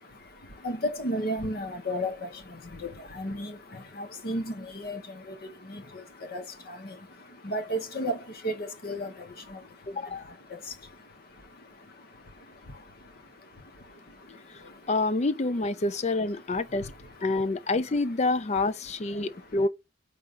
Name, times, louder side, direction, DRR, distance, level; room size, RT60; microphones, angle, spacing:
voice 1, 0.0-15.3 16.3-17.3 17.8-18.3 19.1-19.6, equal, 55° left, 1.1 m, -36 dB
voice 2, 9.9-10.2 14.9-16.9 17.2-19.7, left 2 dB, 40° left, 0.5 m, -27 dB
4.9 x 3.4 x 2.5 m
head